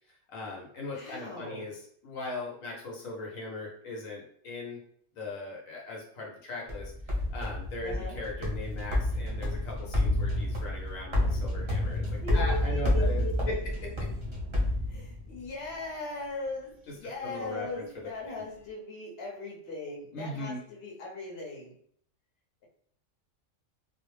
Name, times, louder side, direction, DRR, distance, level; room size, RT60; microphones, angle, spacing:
voice 1, 0.3-4.8 5.1-12.1 12.3-13.5 17.2-18.4 20.1-20.6, left 2 dB, 80° left, -2 dB, 1.1 m, -39 dB
voice 2, 0.9-1.7 7.8-8.2 12.2-13.6 14.9-21.7, left 2 dB, 55° left, -2 dB, 0.9 m, -39 dB
sound 1, 6.7-15.5, left 1 dB, 35° right, 0.4 m, -29 dB
2.4 x 2.0 x 3.0 m, 0.63 s
omnidirectional pair, 1.4 m